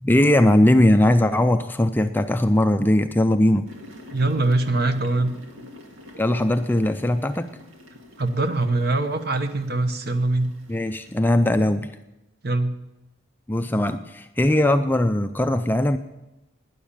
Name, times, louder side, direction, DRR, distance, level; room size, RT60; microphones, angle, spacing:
voice 1, 0.0-3.6 6.2-7.5 10.7-12.0 13.5-16.0, left 1 dB, 10° left, 9 dB, 0.4 m, -19 dB
sound 1, 3.7-11.2, left 1 dB, 80° right, 2.3 m, -46 dB
voice 2, 4.1-5.3 8.2-10.5 12.4-12.7, right 2 dB, 50° right, 9 dB, 1.1 m, -23 dB
12.0 x 10.0 x 8.7 m, 0.99 s
head